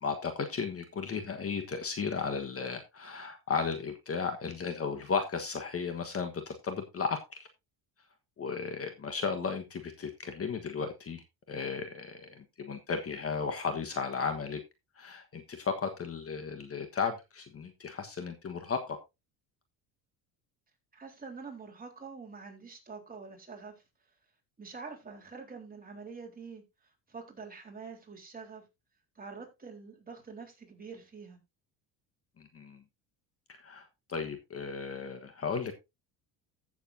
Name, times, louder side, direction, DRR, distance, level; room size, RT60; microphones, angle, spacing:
voice 1, 0.0-7.5 8.4-14.6 15.0-19.0 32.4-32.8 33.5-35.7, left 5 dB, 35° left, 1.4 m, -35 dB
voice 2, 20.9-23.8 24.6-28.6 29.2-31.4, right 5 dB, 20° right, 3.9 m, -46 dB
15.0 x 7.1 x 2.7 m
supercardioid pair, 100°, 42 cm